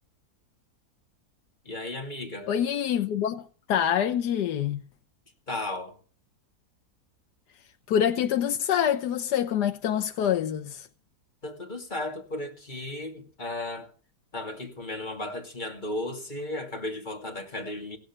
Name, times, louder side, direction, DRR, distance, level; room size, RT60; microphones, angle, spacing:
voice 1, 1.6-2.5 5.5-6.0 11.4-13.9 14.3-18.0, left 1 dB, 30° left, 2.6 m, -35 dB
voice 2, 2.5-4.8 7.9-10.9, left 9 dB, 90° left, 1.4 m, -26 dB
16.5 x 9.9 x 5.9 m
omnidirectional pair, 1.7 m